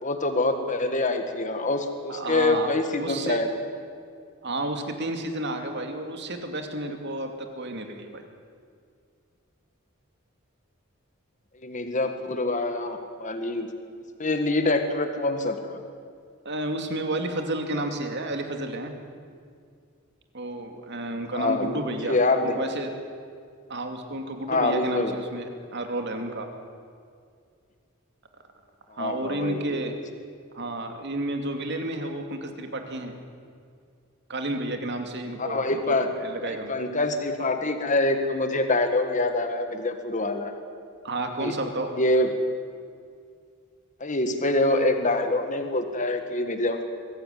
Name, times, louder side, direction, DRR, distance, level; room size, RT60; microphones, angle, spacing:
voice 1, 0.0-3.5 11.6-13.7 14.2-15.8 21.3-22.6 24.5-25.1 28.9-30.0 35.4-36.1 36.4-40.5 41.4-41.5 42.0-42.3 44.0-46.8, left 2 dB, 35° left, 7 dB, 1.6 m, -25 dB
voice 2, 2.1-3.4 4.4-8.3 16.4-18.9 20.3-22.2 22.4-22.9 23.7-26.5 28.9-29.9 30.5-33.1 34.3-36.7 41.0-41.9, right 1 dB, 55° right, 5 dB, 2.6 m, -31 dB
23.0 x 16.0 x 9.3 m, 2.2 s
head